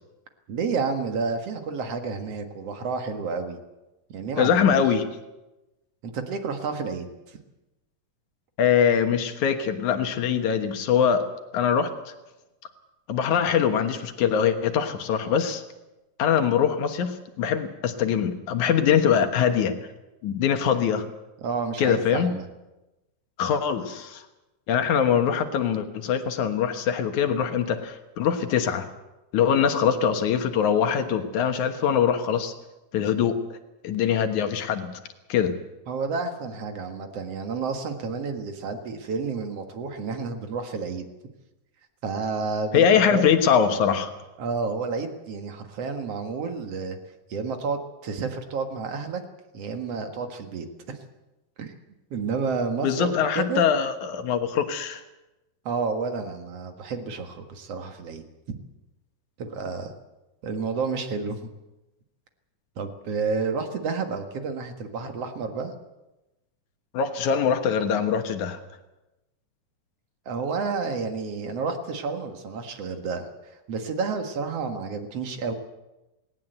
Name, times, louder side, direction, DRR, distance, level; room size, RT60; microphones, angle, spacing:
voice 1, 0.5-3.6 4.1-4.8 6.0-7.4 21.4-22.5 35.9-41.1 42.0-43.3 44.4-47.0 47.3-49.2 49.5-51.0 51.6-51.7 52.1-53.6 55.7-58.6 59.4-59.9 60.4-61.4 62.8-65.7 70.3-73.3 73.7-75.5, right 4 dB, 55° right, 6 dB, 2.5 m, -30 dB
voice 2, 4.4-5.1 8.6-11.3 11.5-11.9 13.1-15.6 16.2-19.8 20.2-21.1 21.8-22.3 23.4-24.2 24.7-28.9 29.3-32.5 32.9-33.4 33.8-34.9 35.3-35.5 42.7-44.1 52.8-55.0 66.9-68.6, left 8 dB, 70° left, 7 dB, 2.7 m, -23 dB
18.5 x 18.5 x 8.0 m, 1.0 s
omnidirectional pair, 3.7 m